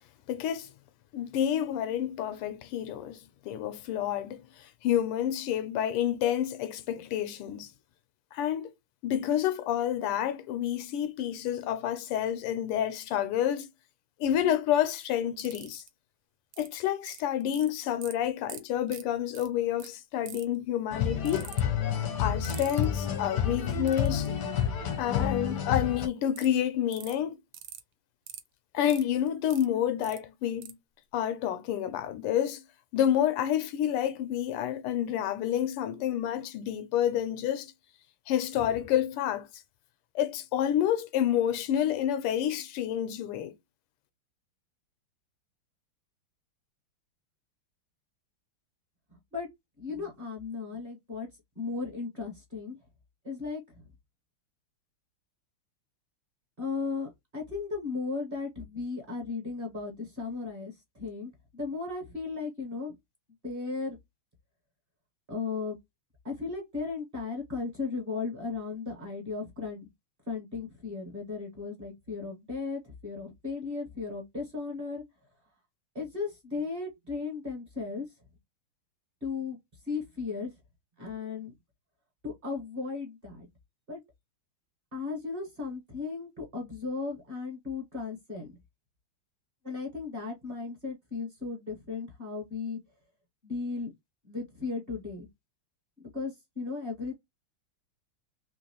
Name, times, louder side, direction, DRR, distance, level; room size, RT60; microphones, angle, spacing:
voice 1, 0.3-0.7 1.1-7.7 8.3-8.7 9.0-13.7 14.2-15.8 16.6-21.5 22.2-24.3 25.0-27.4 28.7-30.8 31.1-32.6 32.9-37.7 38.3-39.5 40.1-43.5, left 10 dB, 85° left, 1.6 m, -29 dB
sound 1, 15.4-15.9 16.5-16.7 17.1-17.7 18.0-18.1 18.5-18.6 18.9-19.0 19.3-19.5 19.8-19.9 20.3-20.6 21.3-21.6 22.4-22.8 23.9-24.3 26.4-26.5 26.9-27.1 27.5-27.8 28.3-28.4 28.9-29.7 30.0-30.2 30.6-30.7, right 11 dB, 70° right, 1.1 m, -43 dB
sound 2, 20.9-26.1, left 8 dB, 65° left, 1.1 m, -29 dB
voice 2, 49.8-51.3 51.5-52.8 53.2-53.8 56.6-62.9 63.4-64.0 65.3-65.7 66.2-69.9 70.3-75.0 75.9-78.1 79.2-79.6 79.9-80.5 81.0-81.5 82.2-83.4 83.9-84.0 84.9-88.5 89.6-92.8 93.4-93.9 94.2-95.3 96.1-97.2, left 4 dB, 30° right, 1.2 m, -36 dB
3.6 x 2.9 x 2.8 m
omnidirectional pair, 2.4 m